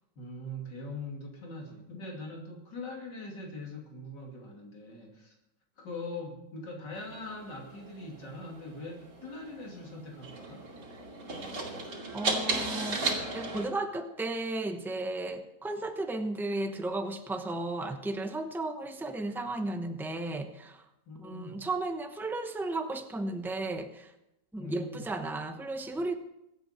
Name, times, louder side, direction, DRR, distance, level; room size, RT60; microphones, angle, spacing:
voice 1, 0.2-5.3 5.8-10.7 21.1-21.7 24.6-25.1, left 2 dB, 90° left, -1 dB, 3.3 m, -42 dB
sound 1, 6.9-13.6, right 3 dB, 85° right, 3.3 m, -36 dB
voice 2, 12.1-20.8 21.2-24.1 24.5-26.2, right 2 dB, ahead, 6 dB, 0.8 m, -34 dB
25.0 x 8.6 x 4.4 m, 0.89 s
omnidirectional pair, 1.8 m